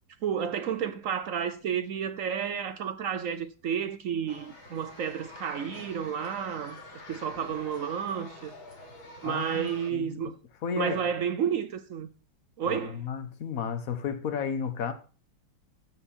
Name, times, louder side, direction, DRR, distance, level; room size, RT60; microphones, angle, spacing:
voice 1, 0.2-6.8 7.1-8.5 9.2-10.4 10.8-12.1 12.6-13.0, right 8 dB, 65° right, 0.8 m, -31 dB
sound 1, 4.3-9.9, left 2 dB, 85° left, 3.8 m, -47 dB
voice 2, 9.2-10.3 10.6-11.0 12.6-14.9, left 6 dB, 50° left, 1.6 m, -33 dB
14.0 x 7.6 x 4.4 m
omnidirectional pair, 2.1 m